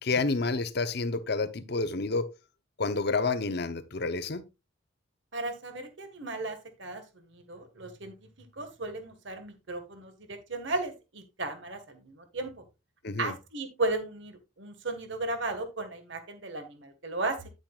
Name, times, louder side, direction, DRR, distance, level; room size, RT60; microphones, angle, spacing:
voice 1, 0.0-2.3 2.8-4.4 13.0-13.3, left 3 dB, 50° left, 0.8 m, -29 dB
voice 2, 5.3-8.1 8.6-12.5 13.2-17.5, right 2 dB, 60° right, 1.6 m, -35 dB
10.0 x 9.0 x 2.4 m
head